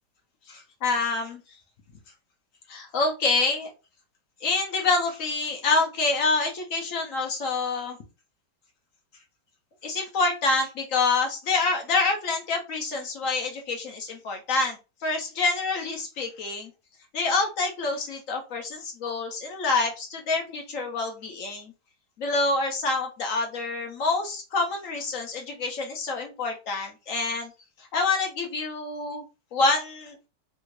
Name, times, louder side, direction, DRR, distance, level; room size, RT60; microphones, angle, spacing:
voice 1, 0.5-1.4 2.7-3.7 4.4-8.0 9.8-16.7 17.1-21.7 22.2-27.5 27.8-29.2 29.5-30.2, left 3 dB, 60° left, 3 dB, 0.9 m, -27 dB
3.4 x 2.4 x 3.1 m, 0.30 s
omnidirectional pair, 1.9 m